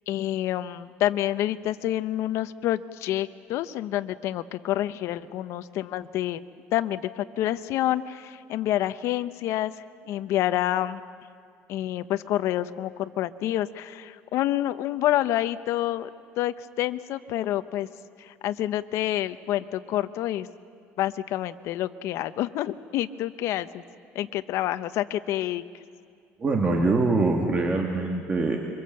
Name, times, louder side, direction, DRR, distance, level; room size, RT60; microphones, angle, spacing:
voice 1, 0.1-6.4 6.7-9.7 10.0-11.0 11.7-16.1 16.4-17.9 18.2-20.5 21.0-23.8 24.1-25.6, left 13 dB, 65° left, 12 dB, 0.8 m, -28 dB
voice 2, 26.4-28.6, right 3 dB, 25° right, 1 dB, 2.3 m, -23 dB
26.0 x 23.5 x 7.8 m, 2.3 s
cardioid pair, 130°, 5 cm